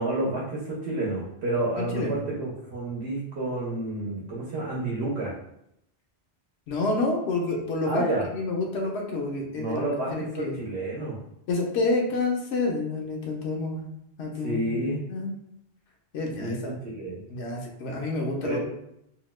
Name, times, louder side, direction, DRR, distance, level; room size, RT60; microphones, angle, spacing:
voice 1, 0.0-5.3 7.8-8.2 9.6-11.2 14.4-15.0 16.4-17.2 18.4-18.6, right 2 dB, 80° right, -4 dB, 1.0 m, -30 dB
voice 2, 1.8-2.2 6.7-8.1 8.3-9.8 10.1-10.6 11.5-13.9 14.2-14.7 15.1-15.3 16.1-16.6 17.3-18.6, left 3 dB, 85° left, 0 dB, 0.9 m, -28 dB
2.8 x 2.1 x 3.0 m, 0.79 s
omnidirectional pair, 1.1 m